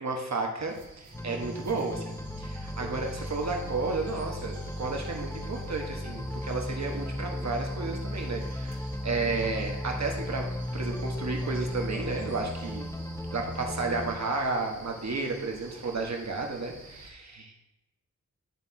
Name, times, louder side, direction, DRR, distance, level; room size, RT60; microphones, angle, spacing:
voice 1, 0.0-10.5 10.7-12.9 13.3-17.6, right 3 dB, 50° right, 1 dB, 1.4 m, -32 dB
sound 1, 0.7-17.1, right 2 dB, 80° right, 1.3 m, -49 dB
sound 2, 1.1-15.9, left 1 dB, 10° left, 0.7 m, -36 dB
10.5 x 3.5 x 4.3 m, 0.96 s
cardioid pair, 45°, 35 cm